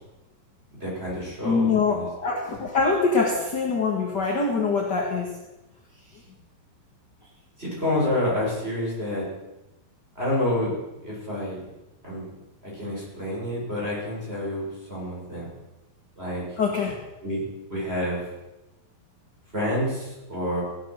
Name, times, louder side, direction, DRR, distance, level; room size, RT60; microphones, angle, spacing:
voice 1, 0.7-2.4 7.6-9.3 10.2-10.8 11.0-11.6 12.0-12.3 12.6-15.5 16.2-16.4 17.2-17.4 17.7-18.2 19.5-20.6, left 1 dB, 15° right, -5 dB, 6.9 m, -28 dB
voice 2, 1.4-5.3 16.6-17.0, left 4 dB, 40° left, 0 dB, 1.7 m, -24 dB
17.0 x 11.0 x 6.5 m, 1.0 s
omnidirectional pair, 4.4 m